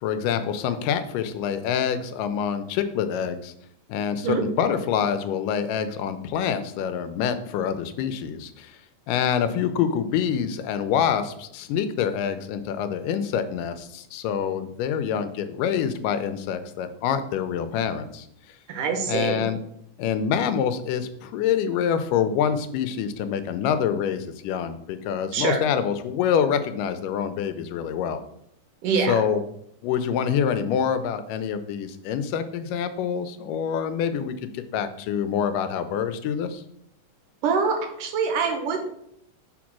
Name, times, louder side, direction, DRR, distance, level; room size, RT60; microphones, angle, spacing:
voice 1, 0.0-3.5 3.9-8.7 9.1-18.3 19.1-19.6 20.0-28.2 28.9-29.4 29.8-36.6, left 8 dB, 85° left, 10 dB, 2.2 m, -26 dB
voice 2, 18.7-19.4 25.3-25.6 28.8-29.2 37.4-38.9, right 5 dB, 80° right, 5 dB, 2.6 m, -24 dB
6.2 x 4.4 x 6.0 m, 0.72 s
omnidirectional pair, 3.7 m